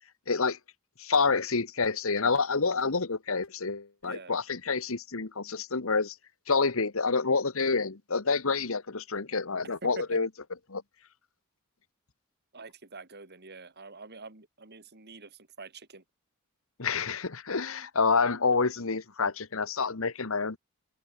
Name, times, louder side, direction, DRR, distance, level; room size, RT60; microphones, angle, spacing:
voice 1, 0.3-0.6 1.0-6.1 6.5-10.3 10.7-10.8 16.8-20.6, left 4 dB, 65° left, 1.3 m, -28 dB
voice 2, 4.0-4.3 9.8-10.2 12.5-16.0, right 3 dB, 50° right, 3.3 m, -46 dB
head